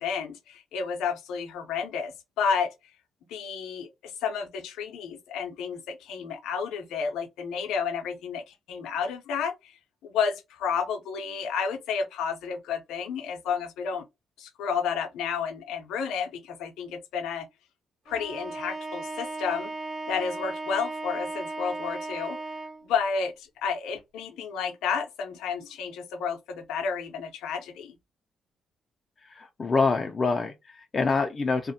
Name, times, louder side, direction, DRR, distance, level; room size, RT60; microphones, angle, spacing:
voice 1, 0.0-2.7 3.3-14.1 14.4-17.5 18.1-19.7 20.1-22.4 22.8-27.9, left 6 dB, 90° left, 0.6 m, -31 dB
Bowed string instrument, 18.1-22.9, right 2 dB, 45° right, 0.9 m, -36 dB
voice 2, 29.2-31.7, left 4 dB, 35° left, 0.4 m, -26 dB
2.4 x 2.1 x 2.6 m
cardioid pair, 90°, 0 cm